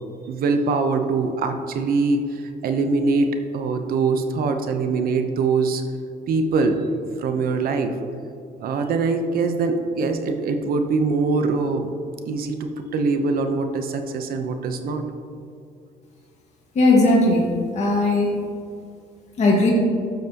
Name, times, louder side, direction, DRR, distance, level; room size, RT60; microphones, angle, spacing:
voice 1, 0.3-5.8 6.3-6.9 7.2-8.0 8.6-11.9 12.3-15.0, right 4 dB, 60° right, 6 dB, 0.8 m, -23 dB
voice 2, 16.7-18.3 19.4-19.7, left 2 dB, 40° left, -3 dB, 1.8 m, -18 dB
12.5 x 5.9 x 2.9 m, 2.4 s
cardioid pair, 110°, 17 cm